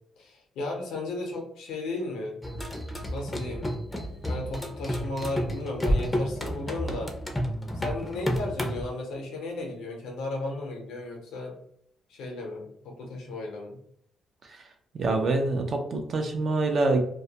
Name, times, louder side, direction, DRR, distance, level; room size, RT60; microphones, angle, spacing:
voice 1, 0.2-2.4 3.1-3.7 4.3-7.1 7.7-11.6 12.1-13.8, left 2 dB, 90° left, 1 dB, 0.7 m, -35 dB
sound 1, 2.4-8.8, equal, 10° left, 0.5 m, -30 dB
voice 2, 14.9-17.0, right 2 dB, 50° right, 4 dB, 0.5 m, -25 dB
2.3 x 2.1 x 2.8 m, 0.69 s
cardioid pair, 90°, 0 cm